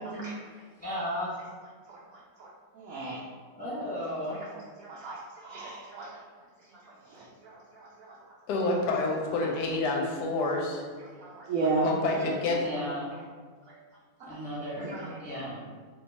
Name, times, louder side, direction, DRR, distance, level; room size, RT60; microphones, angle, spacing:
voice 1, 0.0-0.4 1.9-3.2 4.8-6.2 6.8-8.2 9.4-9.5 11.0-11.9 12.2-12.3 12.5-12.9 13.7-13.8 14.8-15.0, right 3 dB, 70° right, -5 dB, 0.9 m, -35 dB
voice 2, 0.8-1.4 3.6-4.4 12.6-13.1 14.2-15.6, equal, 10° left, -9 dB, 0.4 m, -35 dB
voice 3, 8.5-10.8 11.8-12.6, left 2 dB, 75° left, 0 dB, 1.1 m, -28 dB
2.8 x 2.3 x 3.9 m, 1.5 s
omnidirectional pair, 1.9 m